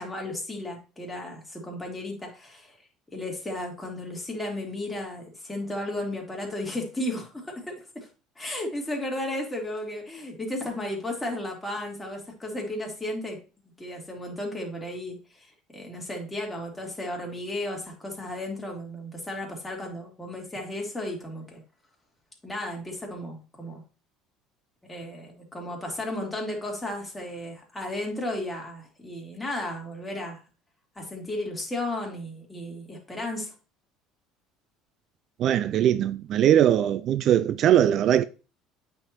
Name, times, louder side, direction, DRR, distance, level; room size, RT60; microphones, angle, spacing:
voice 1, 0.0-2.8 3.1-8.1 8.4-13.4 13.8-21.6 22.4-23.8 24.9-30.4 31.0-33.5, left 1 dB, 10° left, 2.8 m, -34 dB
voice 2, 35.4-38.2, right 10 dB, 50° right, 0.3 m, -21 dB
8.7 x 4.5 x 2.9 m
hypercardioid pair, 65°, 0 cm